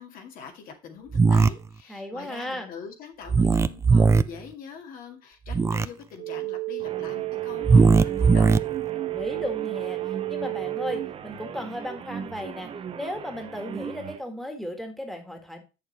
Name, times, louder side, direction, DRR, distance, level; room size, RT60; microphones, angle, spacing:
voice 1, 0.0-8.6, left 6 dB, 65° left, 4 dB, 2.2 m, -43 dB
sound 1, 1.1-1.5 3.3-4.2 5.5-5.9 7.6-8.6, right 4 dB, 20° right, 0.4 m, -18 dB
voice 2, 1.9-2.7 8.9-15.6, left 1 dB, ahead, 4 dB, 1.7 m, -35 dB
sound 2, 6.2-11.1, right 21 dB, 55° right, 1.4 m, -31 dB
sound 3, 6.8-14.2, right 7 dB, 35° right, 0.8 m, -38 dB
7.9 x 6.6 x 4.2 m, 0.29 s
cardioid pair, 130°, 16 cm